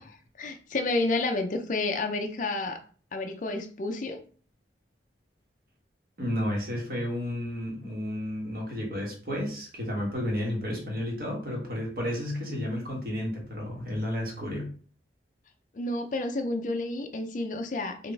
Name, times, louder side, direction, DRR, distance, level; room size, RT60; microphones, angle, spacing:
voice 1, 0.4-2.8 3.1-4.2 15.7-18.1, left 2 dB, 45° left, 4 dB, 0.4 m, -30 dB
voice 2, 6.2-14.7, left 1 dB, 55° right, -1 dB, 1.3 m, -32 dB
4.0 x 2.5 x 3.4 m, 0.43 s
head